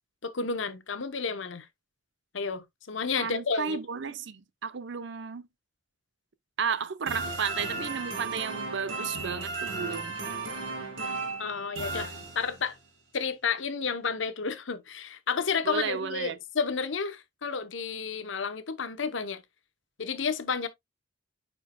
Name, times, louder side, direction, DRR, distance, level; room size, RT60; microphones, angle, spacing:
voice 1, 0.2-1.7 2.3-3.8 11.4-12.8 13.1-19.4 20.0-20.7, left 5 dB, 70° left, 0.9 m, -31 dB
voice 2, 3.2-5.5 6.6-10.2 15.6-16.4, right 6 dB, 65° right, 0.6 m, -33 dB
sound 1, 7.1-12.8, right 3 dB, 90° right, 2.4 m, -35 dB
9.3 x 4.5 x 2.2 m
head